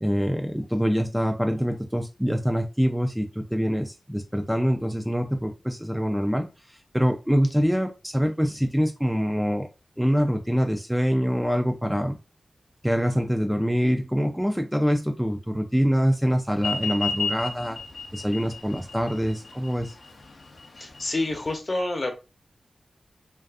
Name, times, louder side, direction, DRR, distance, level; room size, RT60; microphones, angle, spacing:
voice 1, 0.0-9.7 10.0-12.2 12.8-17.8 18.1-19.9, equal, 5° right, 3 dB, 0.3 m, -25 dB
sound 1, 16.6-21.6, left 5 dB, 90° left, 0.4 m, -33 dB
voice 2, 20.7-22.1, left 2 dB, 45° left, 4 dB, 0.6 m, -28 dB
2.4 x 2.4 x 2.3 m, 0.28 s
wide cardioid pair, 85°, 0 cm